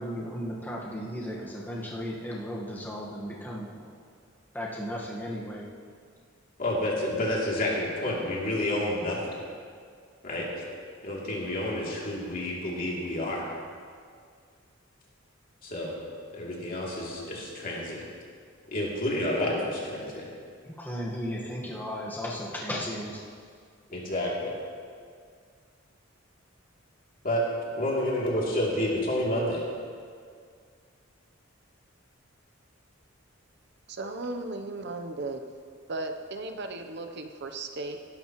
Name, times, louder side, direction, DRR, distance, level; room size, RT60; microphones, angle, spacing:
voice 1, 0.0-4.0 4.5-5.7 20.6-23.2 23.9-24.1 25.0-25.1, equal, 10° left, -4 dB, 1.4 m, -35 dB
voice 2, 6.6-9.4 10.2-10.6 11.0-13.5 15.6-15.9 16.3-18.0 18.7-20.3 23.9-24.5 27.2-27.4 27.8-29.6, left 1 dB, 45° left, -4 dB, 2.9 m, -29 dB
voice 3, 33.9-35.4 35.9-38.0, right 2 dB, 55° right, 6 dB, 0.8 m, -36 dB
18.5 x 11.5 x 3.1 m, 2.1 s
head